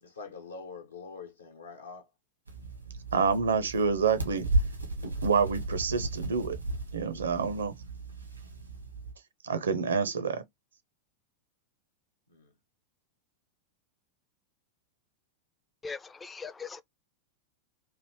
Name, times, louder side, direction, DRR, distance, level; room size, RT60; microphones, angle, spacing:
voice 1, 0.0-2.1 12.3-12.5, left 4 dB, 75° left, 0.9 m, -45 dB
sound 1, 2.5-9.1, right 2 dB, 85° right, 0.9 m, -34 dB
voice 2, 3.1-4.5 5.0-6.6 6.9-7.7 9.4-10.4, right 5 dB, 70° right, 0.5 m, -27 dB
voice 3, 15.8-16.8, left 5 dB, 15° left, 0.3 m, -40 dB
3.2 x 2.5 x 3.0 m
figure-of-eight pair, 90°, 0 cm